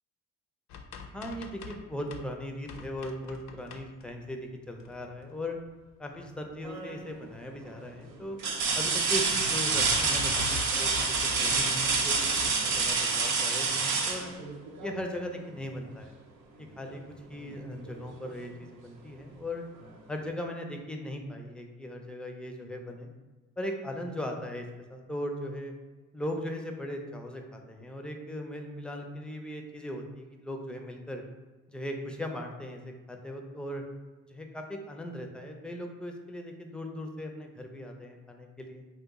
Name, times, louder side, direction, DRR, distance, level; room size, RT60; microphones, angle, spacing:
sound 1, 0.7-2.3 2.6-4.3 4.7-5.4 5.8-6.2 6.5-6.6 6.9-7.0 8.0-8.1 8.5-8.6 9.1-12.7 13.1-13.6 14.0-14.2 14.5-14.6, left 5 dB, 65° left, 0.4 m, -42 dB
voice 1, 1.0-5.6 6.0-8.4 8.7-14.3 14.8-16.2 16.8-17.0 17.3-19.6 20.1-23.1 23.6-24.6 24.9-25.7 26.1-31.2 31.7-33.8 34.3-38.8, left 1 dB, 5° left, 3 dB, 0.4 m, -38 dB
sound 2, 6.6-7.1 7.7-7.8 8.4-15.1 16.9-17.0 17.5-18.5 19.8-19.9, right 4 dB, 85° right, 0.6 m, -28 dB
2.9 x 2.2 x 3.5 m, 1.2 s
cardioid pair, 90°, 30 cm